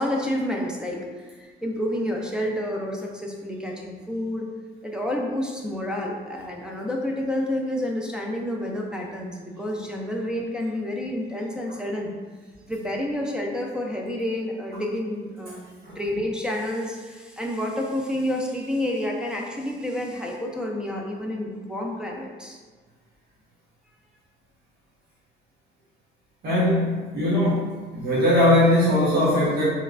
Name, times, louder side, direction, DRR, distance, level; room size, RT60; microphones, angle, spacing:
voice 1, 0.0-4.5 4.8-12.1 12.7-22.6, left 1 dB, 5° right, -2 dB, 0.5 m, -29 dB
voice 2, 26.4-27.7 27.9-29.6, left 1 dB, 55° right, -9 dB, 1.2 m, -20 dB
3.1 x 3.1 x 2.5 m, 1.4 s
cardioid pair, 90°, 20 cm